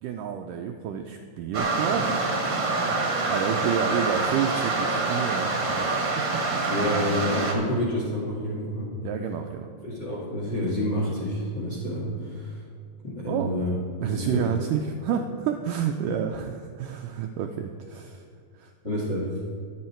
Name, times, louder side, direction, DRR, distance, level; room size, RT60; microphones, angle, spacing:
voice 1, 0.0-2.5 3.0-5.9 6.2-6.3 6.6-6.7 9.0-9.7 13.3-13.5 14.0-18.2 18.6-18.7, right 8 dB, 90° right, 4 dB, 1.9 m, -30 dB
sound 1, 1.5-7.5, right 3 dB, 40° right, 1.8 m, -26 dB
voice 2, 6.7-8.9 9.8-12.6 13.0-13.7 14.1-14.5 18.8-19.3, left 1 dB, 35° left, -3 dB, 2.2 m, -28 dB
22.5 x 8.3 x 4.5 m, 2.2 s
omnidirectional pair, 4.5 m